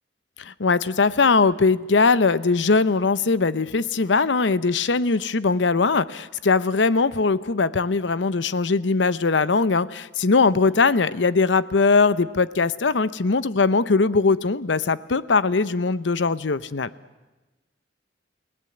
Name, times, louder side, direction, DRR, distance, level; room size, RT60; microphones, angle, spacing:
voice 1, 0.4-16.9, left 4 dB, 85° left, 16 dB, 0.8 m, -20 dB
30.0 x 18.0 x 7.9 m, 1.1 s
head